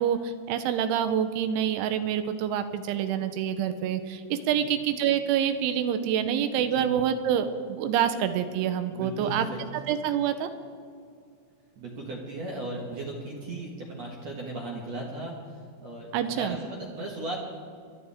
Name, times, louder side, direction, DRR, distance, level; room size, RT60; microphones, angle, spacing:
voice 1, 0.0-9.5 9.9-10.5 16.1-16.6, right 9 dB, 85° right, 9 dB, 3.2 m, -27 dB
voice 2, 6.6-7.0 8.9-9.8 11.8-17.4, right 2 dB, 60° right, -2 dB, 1.7 m, -37 dB
27.0 x 11.5 x 3.6 m, 2.2 s
omnidirectional pair, 5.5 m